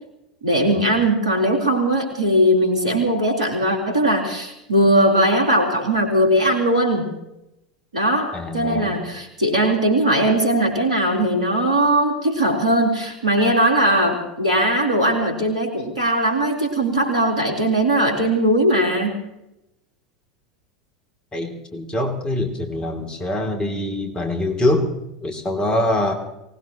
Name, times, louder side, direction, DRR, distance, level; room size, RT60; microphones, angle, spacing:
voice 1, 0.4-7.1 7.9-19.2, right 1 dB, 80° right, 2 dB, 3.7 m, -19 dB
voice 2, 8.3-9.0 21.3-24.9 25.2-26.1, left 1 dB, 25° left, 4 dB, 2.9 m, -24 dB
24.0 x 19.0 x 3.1 m, 0.89 s
figure-of-eight pair, 80°, 4 cm